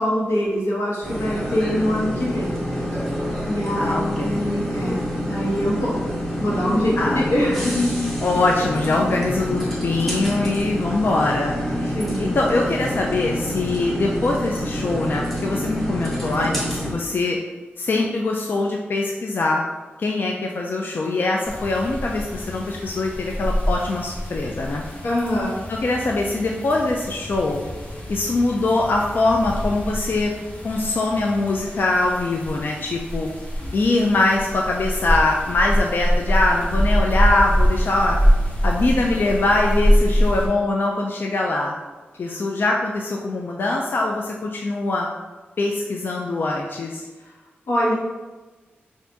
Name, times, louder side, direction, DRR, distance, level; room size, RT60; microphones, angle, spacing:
voice 1, 0.0-2.6 3.4-5.0 5.2-6.0 6.4-8.0 11.9-12.3 25.0-25.6 47.7-47.9, equal, 90° left, -5 dB, 1.1 m, -23 dB
sound 1, 1.0-16.9, equal, 5° left, 1.1 m, -27 dB
voice 2, 3.8-4.4 7.0-7.3 8.2-17.4 17.8-19.6 20.0-24.8 25.7-27.6 28.1-30.3 30.6-33.3 33.7-38.2 38.6-41.7 42.2-45.1 45.6-47.0, left 2 dB, 55° left, 0 dB, 0.4 m, -23 dB
sound 2, 21.5-40.5, equal, 30° left, 1.0 m, -24 dB
3.4 x 2.5 x 3.9 m, 1.3 s
wide cardioid pair, 75°, 4 cm